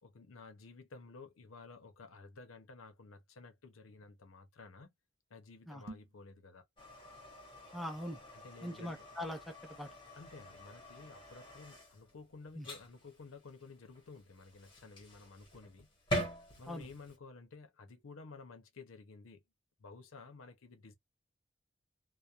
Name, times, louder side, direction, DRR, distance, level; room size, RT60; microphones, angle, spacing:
voice 1, 0.0-4.9 5.3-6.6 8.3-9.1 10.1-15.9 16.6-19.4 19.8-20.9, left 4 dB, 90° left, 0.6 m, -53 dB
sound 1, 5.8-6.3, right 2 dB, 70° right, 0.6 m, -49 dB
sound 2, 6.8-17.2, equal, 25° left, 1.1 m, -45 dB
voice 2, 7.7-8.2 8.6-9.9 12.5-12.7 16.7-16.9, equal, ahead, 0.4 m, -42 dB
2.3 x 2.1 x 2.8 m
head